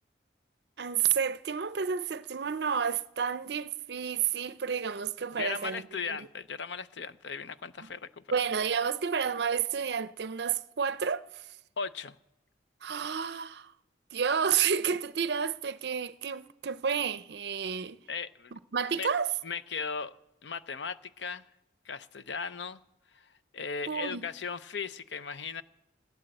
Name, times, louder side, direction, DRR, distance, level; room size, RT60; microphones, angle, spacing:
voice 1, 0.8-5.8 6.1-6.3 8.3-11.5 12.8-13.7 14.1-18.0 18.5-19.3 23.9-24.2, right 7 dB, 65° right, 0.5 m, -30 dB
voice 2, 5.4-8.2 11.8-12.2 18.1-18.5 18.9-19.1 19.4-20.1 20.4-21.4 21.8-22.8 23.1-25.6, left 5 dB, 70° left, 0.6 m, -37 dB
17.0 x 10.5 x 7.8 m
head